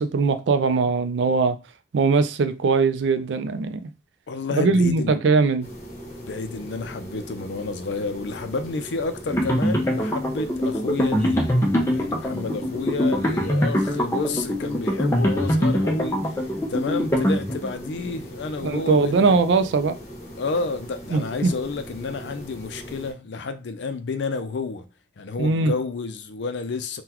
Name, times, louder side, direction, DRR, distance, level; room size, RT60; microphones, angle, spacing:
voice 1, 0.0-1.6 1.9-3.9 4.6-5.7 18.6-20.0 21.1-21.5 25.4-25.7, right 4 dB, 80° right, 0.4 m, -21 dB
voice 2, 4.3-5.3 6.2-11.5 11.9-19.3 20.4-24.9 25.2-27.0, left 3 dB, 75° left, 0.4 m, -30 dB
sound 1, 5.6-23.1, equal, 40° left, 1.1 m, -40 dB
sound 2, 9.3-17.9, equal, 15° left, 0.6 m, -23 dB
3.7 x 2.2 x 2.9 m
head